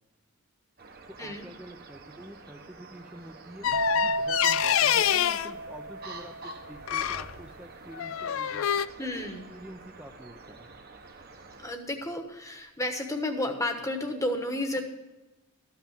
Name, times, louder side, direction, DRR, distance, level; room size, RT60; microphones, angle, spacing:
sound 1, 0.8-11.8, right 3 dB, 45° right, 1.0 m, -48 dB
voice 1, 1.1-8.7 9.0-10.7, right 1 dB, 10° right, 2 dB, 0.5 m, -47 dB
sound 2, 3.6-5.5 6.9-7.3 7.9-8.9, left 10 dB, 65° left, 0.4 m, -26 dB
sound 3, 3.7-7.3, right 2 dB, 65° right, 1.5 m, -33 dB
voice 2, 9.0-9.4 11.6-14.8, left 1 dB, 15° left, 5 dB, 1.1 m, -32 dB
13.5 x 5.8 x 7.2 m, 1.1 s
head